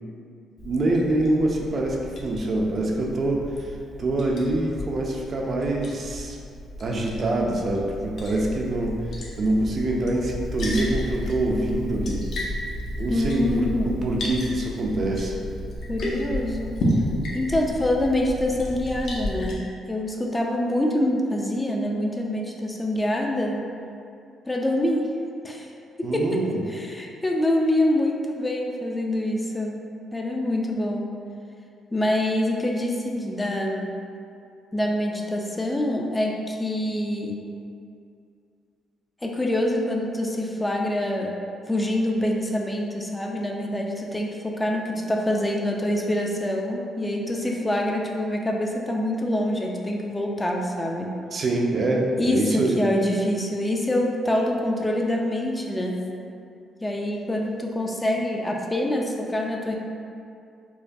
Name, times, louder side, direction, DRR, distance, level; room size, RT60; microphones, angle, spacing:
Liquid, 0.6-19.5, equal, 65° left, 0.7 m, -32 dB
voice 1, 0.6-3.7 4.0-6.4 6.8-9.0 9.4-12.3 13.0-15.4 26.0-26.6 51.3-52.8, right 2 dB, 50° right, 0 dB, 0.4 m, -25 dB
voice 2, 13.1-14.0 15.9-16.7 17.3-23.6 24.5-25.1 25.4-25.7 26.0-26.4 26.7-29.8 30.1-31.1 31.9-33.9 34.7-37.4 39.2-41.4 41.7-51.2 52.2-56.0 56.8-59.8, left 1 dB, 15° left, 0 dB, 0.4 m, -25 dB
4.6 x 2.2 x 2.6 m, 2.5 s
cardioid pair, 90°, 0 cm